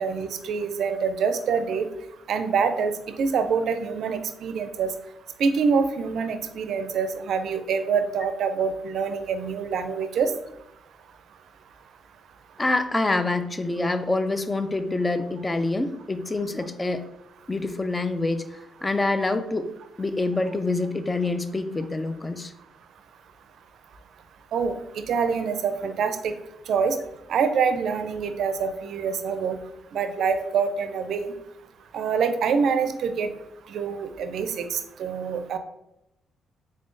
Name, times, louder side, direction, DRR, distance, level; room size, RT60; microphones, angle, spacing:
voice 1, 0.0-1.9 2.3-2.9 3.2-4.9 5.4-10.3 24.5-24.8 25.1-26.3 26.7-27.0 27.3-29.6 29.9-31.3 31.9-33.3 33.7-35.6, right 6 dB, 70° right, 9 dB, 0.4 m, -25 dB
voice 2, 12.6-17.0 17.5-18.4 18.8-19.7 20.0-22.5, left 2 dB, 20° left, 10 dB, 0.4 m, -26 dB
3.7 x 3.6 x 2.5 m, 0.85 s
cardioid pair, 90°, 0 cm